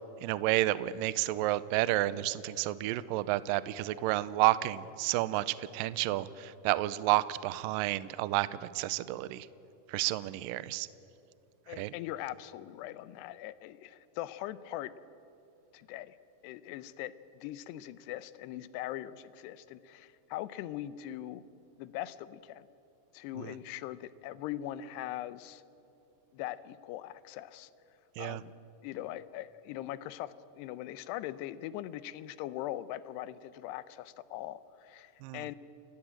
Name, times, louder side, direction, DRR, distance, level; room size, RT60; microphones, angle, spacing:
voice 1, 0.2-9.5 9.9-10.9 11.7-11.9 23.4-23.5 28.2-28.4 35.2-35.5, right 16 dB, 85° right, 16 dB, 2.0 m, -30 dB
voice 2, 11.7-14.9 15.7-16.2 16.4-21.4 21.8-22.7 23.1-25.6 26.3-27.7 28.2-28.5 28.8-35.6, left 13 dB, 85° left, 16 dB, 2.8 m, -41 dB
30.0 x 14.5 x 8.9 m, 2.8 s
omnidirectional pair, 4.8 m